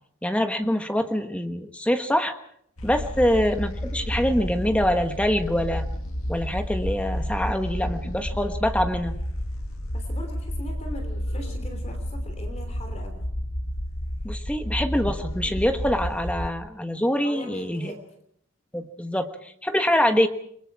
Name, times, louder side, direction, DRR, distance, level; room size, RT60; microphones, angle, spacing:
voice 1, 0.2-2.3 2.8-5.9 6.3-9.2 14.2-17.9 18.7-20.3, equal, 5° left, 6 dB, 1.3 m, -25 dB
sound 1, 2.8-16.5, equal, 80° left, 1.9 m, -31 dB
voice 2, 9.9-13.2 17.2-18.0, equal, 30° left, 5 dB, 3.1 m, -40 dB
28.5 x 22.0 x 4.8 m, 0.68 s
head